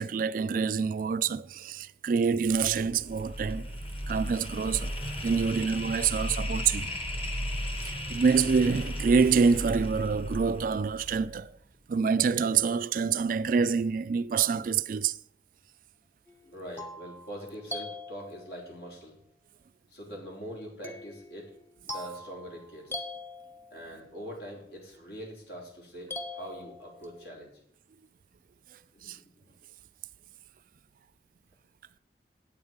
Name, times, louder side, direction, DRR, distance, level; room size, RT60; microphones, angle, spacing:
voice 1, 0.0-3.7 4.1-4.9 5.2-6.9 7.8-11.5 11.9-15.2 29.0-29.2, right 5 dB, 50° right, 0.3 m, -26 dB
sound 1, 2.4-11.5, equal, 30° left, 1.4 m, -35 dB
sound 2, 16.3-18.8 20.8-24.0 26.1-27.3, left 2 dB, 10° left, 1.0 m, -42 dB
voice 2, 16.4-19.1 19.9-21.5 21.9-23.0 23.7-27.5 28.9-29.5, equal, 70° left, 3.8 m, -43 dB
9.5 x 8.6 x 5.2 m
head